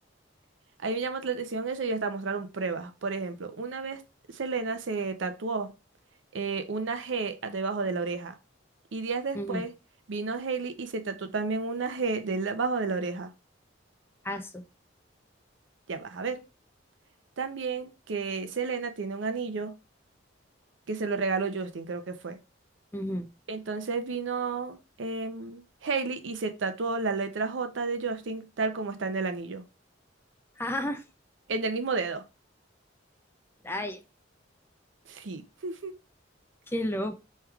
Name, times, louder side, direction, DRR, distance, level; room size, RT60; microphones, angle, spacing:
voice 1, 0.8-4.0 4.3-5.7 6.3-8.3 8.9-9.7 10.1-13.3 15.9-16.4 17.4-19.7 20.9-22.4 23.5-29.6 31.5-32.2 35.1-35.9, right 4 dB, 75° right, 0.6 m, -31 dB
voice 2, 14.2-14.6 22.9-23.3 30.6-31.0 33.6-34.0 36.7-37.2, left 1 dB, 10° left, 0.4 m, -32 dB
4.7 x 3.2 x 2.3 m
head